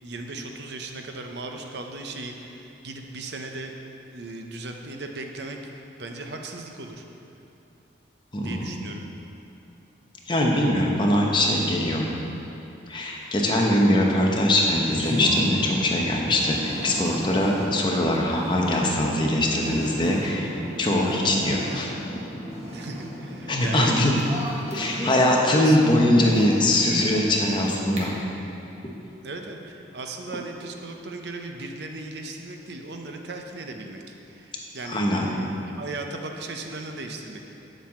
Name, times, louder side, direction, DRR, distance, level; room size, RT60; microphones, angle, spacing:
voice 1, 0.0-3.7 4.1-5.6 6.0-7.0 8.4-9.0 22.7-24.0 25.1-26.0 29.2-37.4, right 2 dB, 65° right, 3 dB, 0.7 m, -37 dB
voice 2, 8.3-8.7 10.3-12.1 12.9-20.5 20.8-21.9 23.5-24.1 24.7-28.1 34.8-35.3, left 1 dB, 25° left, -1 dB, 0.9 m, -22 dB
sound 1, 14.8-28.0, equal, 35° right, 1.4 m, -34 dB
7.4 x 5.5 x 7.5 m, 2.8 s
head